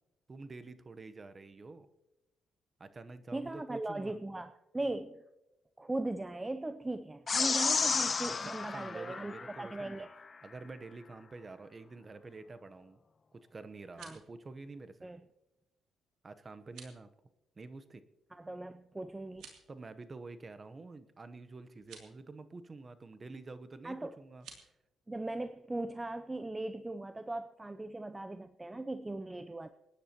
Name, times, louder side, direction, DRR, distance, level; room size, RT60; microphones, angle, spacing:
voice 1, 0.3-1.9 2.8-4.2 8.2-10.1 10.4-13.0 13.3-15.1 16.2-17.1 17.6-18.0 19.7-24.7, right 3 dB, 30° right, 12 dB, 0.9 m, -48 dB
voice 2, 3.3-5.2 5.8-10.1 14.0-14.2 15.0-15.2 18.3-19.5 23.8-24.2 25.1-29.7, right 2 dB, 15° right, 10 dB, 0.5 m, -39 dB
sound 1, 7.3-9.9, left 5 dB, 35° left, 0.4 m, -32 dB
sound 2, 13.7-14.3 16.6-17.0 19.3-19.7 21.8-22.1 24.3-24.7, right 6 dB, 85° right, 2.8 m, -53 dB
26.5 x 10.0 x 3.0 m, 0.97 s
cardioid pair, 90°, 0 cm